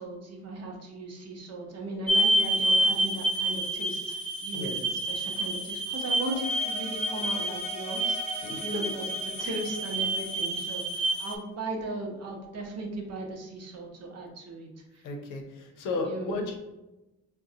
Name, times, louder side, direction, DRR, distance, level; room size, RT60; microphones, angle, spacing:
voice 1, 0.0-4.2 4.4-9.1 9.4-15.0 16.0-16.4, right 2 dB, 55° right, 1 dB, 0.8 m, -37 dB
sound 1, 2.1-11.3, right 1 dB, 15° right, 0.8 m, -28 dB
sound 2, 5.9-11.3, left 1 dB, 20° left, 0.6 m, -44 dB
voice 2, 15.0-16.6, left 3 dB, 85° left, 2 dB, 0.7 m, -34 dB
3.8 x 2.2 x 2.7 m, 1.0 s
cardioid pair, 90°, 30 cm